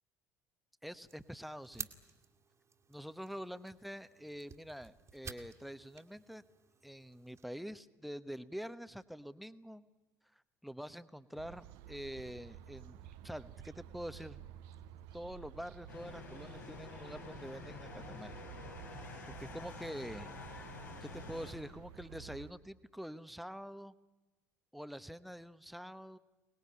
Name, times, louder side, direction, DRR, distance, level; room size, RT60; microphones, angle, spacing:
voice 1, 0.8-1.9 2.9-6.4 6.8-9.9 10.3-13.0 13.2-14.4 15.1-18.4 19.3-20.3 21.0-23.9 24.7-26.2, equal, ahead, 13 dB, 1.1 m, -46 dB
sound 1, 1.0-7.5, right 6 dB, 30° right, 2.0 m, -52 dB
sound 2, 11.4-22.5, right 11 dB, 60° right, 1.0 m, -53 dB
sound 3, 15.9-21.5, left 3 dB, 80° left, 4.1 m, -49 dB
24.0 x 20.0 x 9.8 m, 1.1 s
figure-of-eight pair, 60°, 9 cm